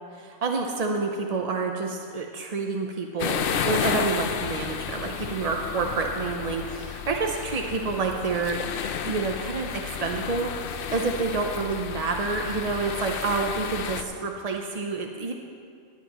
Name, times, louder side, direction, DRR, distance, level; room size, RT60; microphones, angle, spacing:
voice 1, 0.1-8.7 9.0-15.3, right 4 dB, 45° right, 2 dB, 0.5 m, -28 dB
sound 1, 3.2-14.0, left 7 dB, 65° left, 0.6 m, -32 dB
19.5 x 10.0 x 3.0 m, 2.3 s
omnidirectional pair, 1.4 m